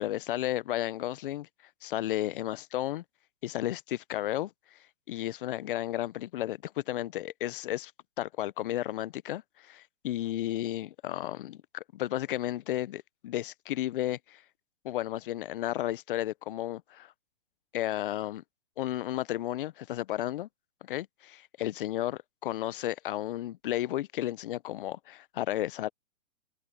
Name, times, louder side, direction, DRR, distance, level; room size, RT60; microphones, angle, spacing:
voice 1, 0.0-1.5 1.8-3.0 3.4-4.8 5.1-7.9 8.2-14.4 14.8-17.1 17.7-18.4 18.8-20.5 20.8-25.9, left 13 dB, 45° left, 0.7 m, -33 dB
hypercardioid pair, 135°, 39 cm